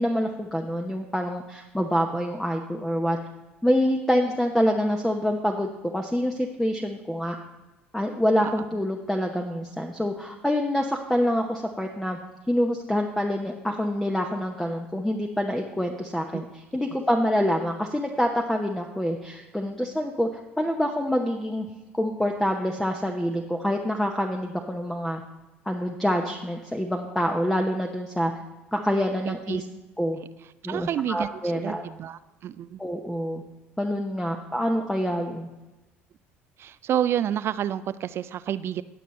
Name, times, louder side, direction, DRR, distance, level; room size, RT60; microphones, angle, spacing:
voice 1, 0.0-3.2 3.6-7.4 7.9-12.2 12.5-20.3 20.6-21.7 21.9-25.2 25.7-28.3 28.7-29.6 30.0-30.2 30.6-31.8 32.8-33.4 33.8-35.5, equal, 5° left, 3 dB, 0.9 m, -26 dB
voice 2, 29.3-29.6 30.2-30.3 30.7-31.3 31.5-32.8 36.6-38.8, right 10 dB, 45° right, 15 dB, 0.4 m, -29 dB
20.0 x 6.7 x 3.2 m, 1.1 s
figure-of-eight pair, 60°, 6 cm